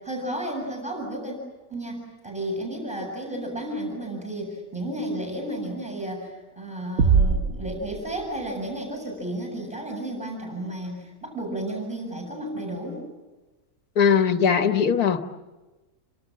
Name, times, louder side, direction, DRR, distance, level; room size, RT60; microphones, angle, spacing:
voice 1, 0.0-1.4 1.7-13.0, right 1 dB, 5° right, 0 dB, 7.7 m, -32 dB
sound 1, 7.0-8.7, right 5 dB, 55° right, 1.5 m, -23 dB
voice 2, 14.0-15.2, left 7 dB, 75° left, 8 dB, 1.8 m, -20 dB
29.5 x 26.0 x 7.6 m, 1.2 s
omnidirectional pair, 1.6 m